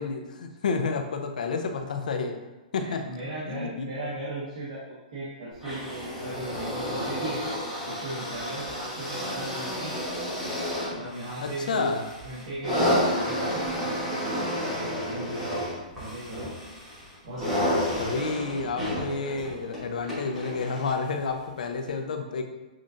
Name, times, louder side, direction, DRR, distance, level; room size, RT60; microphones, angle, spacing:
voice 1, 0.0-2.4 2.7-3.1 3.5-3.9 11.4-12.0 18.0-22.4, left 4 dB, 70° left, 5 dB, 0.6 m, -30 dB
voice 2, 2.8-7.5 7.9-10.0 10.9-12.0 12.2-15.7 16.0-16.5 17.2-17.7, right 1 dB, 45° right, -10 dB, 1.2 m, -37 dB
sound 1, 5.6-21.1 21.9-22.0, equal, 5° right, 1.1 m, -31 dB
7.3 x 2.5 x 2.5 m, 1.1 s
hypercardioid pair, 180°, 4 cm